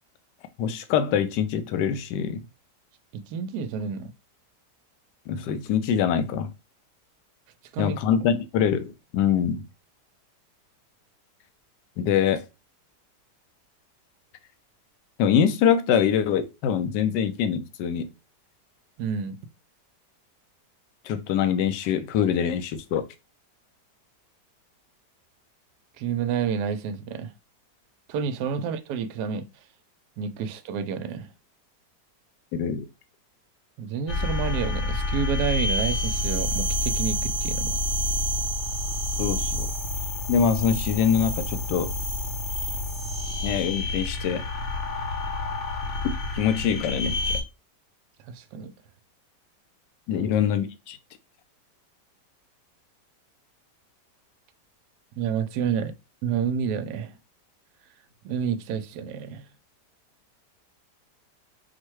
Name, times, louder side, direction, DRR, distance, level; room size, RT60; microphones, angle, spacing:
voice 1, 0.6-2.4 5.3-6.5 7.8-9.6 12.0-12.4 15.2-18.1 21.0-23.0 32.5-32.8 39.2-39.7 40.3-41.9 43.4-44.4 46.3-47.4 50.1-51.0, left 8 dB, 80° left, 1.2 m, -24 dB
voice 2, 3.1-4.1 7.7-8.0 19.0-19.4 26.0-27.3 28.1-29.5 30.2-31.3 33.8-37.8 48.3-48.7 50.1-50.3 55.2-55.9 56.2-57.2 58.2-59.4, right 7 dB, 75° right, 1.1 m, -29 dB
sound 1, 34.1-47.4, left 1 dB, 50° left, 1.1 m, -28 dB
4.5 x 2.1 x 4.6 m
omnidirectional pair, 1.9 m